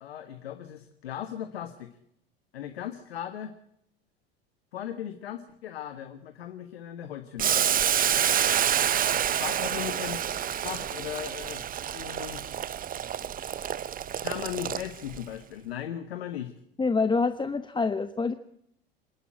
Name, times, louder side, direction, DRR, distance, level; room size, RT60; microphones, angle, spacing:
voice 1, 0.0-2.0 2.5-3.5 4.7-7.8 9.4-10.2 10.6-11.6 11.9-12.4 14.2-16.5, left 10 dB, 80° left, 8 dB, 1.5 m, -37 dB
Boiling, 7.4-15.2, right 9 dB, 30° right, 0.8 m, -28 dB
voice 2, 16.8-18.3, left 4 dB, 15° left, 10 dB, 1.0 m, -26 dB
26.5 x 11.5 x 8.8 m, 0.74 s
hypercardioid pair, 85°, 30 cm